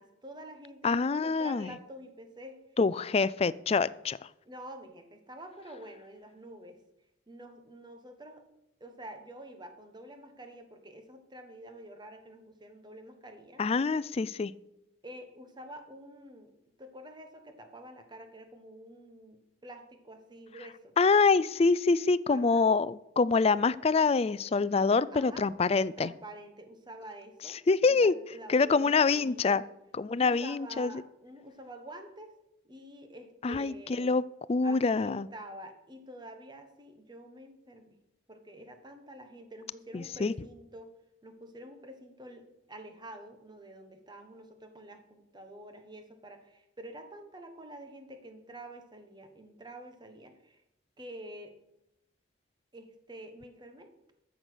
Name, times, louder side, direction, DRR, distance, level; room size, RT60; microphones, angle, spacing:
voice 1, 0.0-2.6 4.4-6.8 7.3-8.4 8.8-13.6 15.0-16.5 16.8-21.0 22.3-22.7 25.1-25.5 26.0-29.6 30.1-32.3 32.6-34.1 34.6-38.0 38.3-40.9 41.2-50.6 51.0-51.5 52.7-53.9, right 1 dB, 25° right, 6 dB, 1.4 m, -48 dB
voice 2, 0.8-1.7 2.8-4.2 13.6-14.5 21.0-26.1 27.7-28.1 28.5-29.6 30.0-30.9 33.4-34.2 34.5-35.3 39.9-40.3, left 4 dB, 30° left, 18 dB, 0.4 m, -25 dB
13.5 x 7.3 x 6.2 m, 0.87 s
head